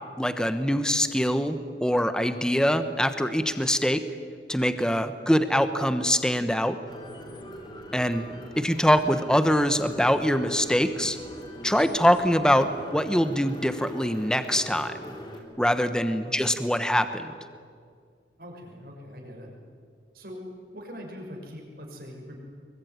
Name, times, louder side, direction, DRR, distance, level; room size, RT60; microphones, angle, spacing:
voice 1, 0.2-4.0 4.5-6.8 7.9-8.2 8.6-11.2 11.6-14.9 15.6-17.3, equal, 5° left, 9 dB, 1.1 m, -23 dB
sound 1, 6.9-15.4, equal, 25° left, 4.3 m, -42 dB
voice 2, 18.4-19.5 20.1-20.4 20.7-22.4, equal, 55° right, 1 dB, 6.4 m, -42 dB
24.5 x 23.0 x 9.6 m, 2.2 s
head